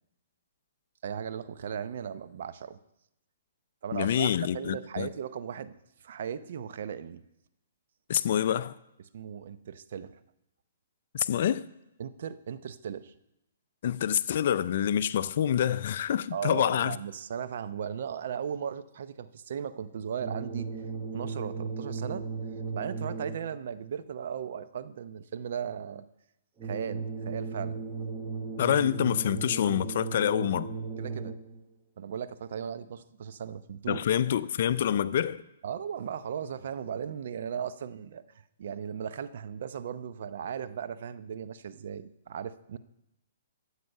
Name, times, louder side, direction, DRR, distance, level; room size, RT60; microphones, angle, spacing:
voice 1, 1.0-2.8 3.8-5.7 6.0-7.2 9.1-10.2 12.0-13.1 16.3-20.7 21.1-22.2 22.7-26.1 26.6-27.8 31.0-31.3 32.0-34.0 35.6-38.2 38.6-42.8, right 8 dB, 60° right, 0.6 m, -37 dB
voice 2, 3.9-5.1 8.1-8.7 11.1-11.6 13.8-17.0 28.6-30.7 33.9-35.4, left 10 dB, 55° left, 0.5 m, -27 dB
sound 1, 20.2-23.6 26.6-31.6, right 4 dB, 15° right, 1.1 m, -36 dB
12.5 x 8.3 x 5.5 m
hypercardioid pair, 145°, 0 cm